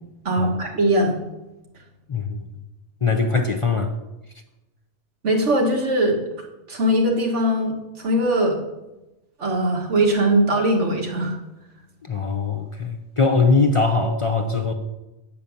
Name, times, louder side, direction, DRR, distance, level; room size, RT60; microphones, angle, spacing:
voice 1, 0.3-1.2 5.2-6.2 6.7-8.6 9.4-11.3, right 1 dB, 85° right, 1 dB, 1.9 m, -20 dB
voice 2, 3.0-3.9 12.0-14.7, left 4 dB, 35° left, 5 dB, 0.6 m, -21 dB
9.1 x 5.1 x 7.0 m, 1.0 s
omnidirectional pair, 1.2 m